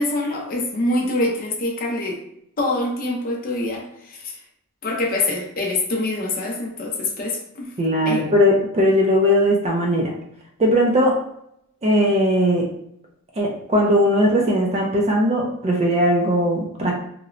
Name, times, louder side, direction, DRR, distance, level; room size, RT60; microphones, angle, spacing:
voice 1, 0.0-2.2 2.6-4.3 4.8-7.7 8.1-8.2, left 2 dB, 40° left, 0 dB, 0.5 m, -25 dB
voice 2, 7.8-10.1 10.6-11.2 11.8-12.7 13.4-16.9, equal, 30° right, 0 dB, 0.4 m, -18 dB
2.9 x 2.0 x 2.4 m, 0.75 s
head